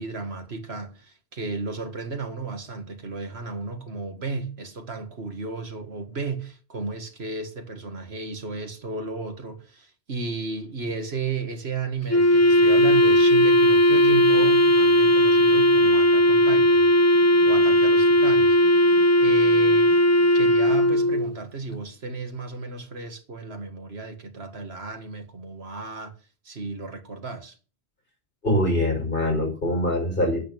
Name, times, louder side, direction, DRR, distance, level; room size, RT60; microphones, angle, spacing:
voice 1, 0.0-16.9 17.5-18.6 19.2-19.9 20.3-26.1 26.4-27.6, right 4 dB, 85° right, 2.2 m, -34 dB
Wind instrument woodwind instrument, 12.1-21.4, equal, 25° left, 0.4 m, -17 dB
voice 2, 28.4-30.4, left 1 dB, 55° left, 5.7 m, -23 dB
9.8 x 8.7 x 8.8 m
omnidirectional pair, 1.1 m